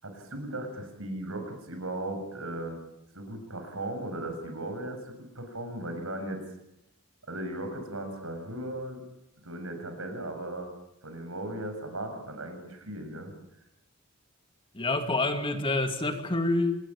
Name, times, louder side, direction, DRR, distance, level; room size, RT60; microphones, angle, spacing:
voice 1, 0.0-2.8 3.1-6.4 7.3-9.0 9.4-10.7 11.0-13.3, right 1 dB, 80° right, 6 dB, 7.3 m, -37 dB
voice 2, 14.7-16.8, left 2 dB, 25° left, 6 dB, 2.5 m, -27 dB
26.0 x 21.0 x 8.9 m, 0.84 s
head